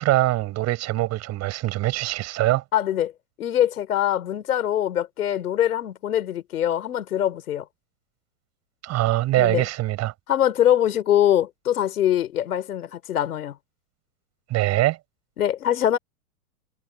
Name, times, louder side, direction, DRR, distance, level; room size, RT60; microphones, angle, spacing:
voice 1, 0.0-2.6 8.8-10.1 14.5-15.0, right 16 dB, 35° right, 4.7 m, -23 dB
voice 2, 2.7-3.1 3.4-7.6 9.4-9.7 10.3-13.6 15.4-16.0, left 11 dB, 80° left, 5.1 m, -23 dB
hypercardioid pair, 120°, 44 cm